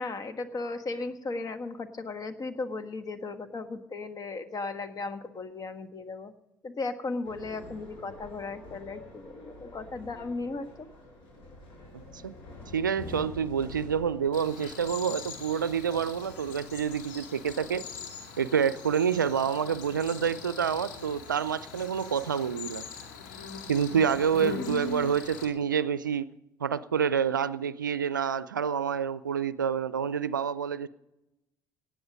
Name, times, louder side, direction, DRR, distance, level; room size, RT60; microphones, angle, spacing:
voice 1, 0.0-6.3 6.6-10.9 24.5-25.2, left 3 dB, 35° left, 10 dB, 1.4 m, -36 dB
sound 1, 7.2-18.1, left 2 dB, 60° left, 7.4 m, -48 dB
voice 2, 12.7-17.9 18.4-22.9 23.7-26.3 26.6-30.9, right 7 dB, 90° right, 17 dB, 0.4 m, -28 dB
Cricket, 14.3-25.5, left 5 dB, 75° left, 2.2 m, -42 dB
18.5 x 11.5 x 5.3 m, 0.91 s
figure-of-eight pair, 55°, 10 cm